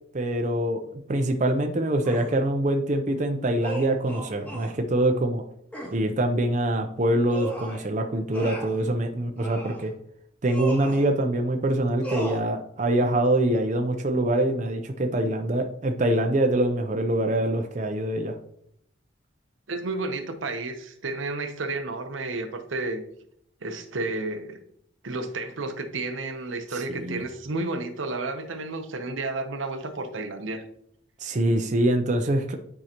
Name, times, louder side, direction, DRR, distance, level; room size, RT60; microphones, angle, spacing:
voice 1, 0.1-0.8 1.1-5.4 5.9-9.9 10.4-18.4 26.7-27.2 31.2-32.5, right 1 dB, 40° right, 5 dB, 0.5 m, -24 dB
sound 1, 2.0-2.3 3.6-4.8 5.7-6.0 7.3-7.8 8.3-8.8 9.4-9.8 10.5-11.1 12.0-12.4, right 2 dB, 10° left, 1.3 m, -35 dB
voice 2, 19.7-23.0 23.6-24.6 25.0-30.6, right 2 dB, 75° right, 7 dB, 0.8 m, -31 dB
8.9 x 4.7 x 2.9 m, 0.70 s
head